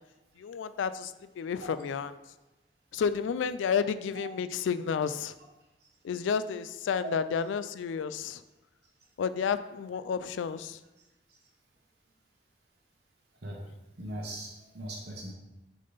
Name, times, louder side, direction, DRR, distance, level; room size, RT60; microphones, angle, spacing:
voice 1, 0.4-2.1 2.9-5.3 6.0-8.4 9.2-10.8, left 6 dB, 85° left, 13 dB, 0.3 m, -31 dB
voice 2, 14.0-15.3, right 1 dB, 60° right, -2 dB, 0.9 m, -39 dB
6.5 x 3.7 x 3.9 m, 0.98 s
head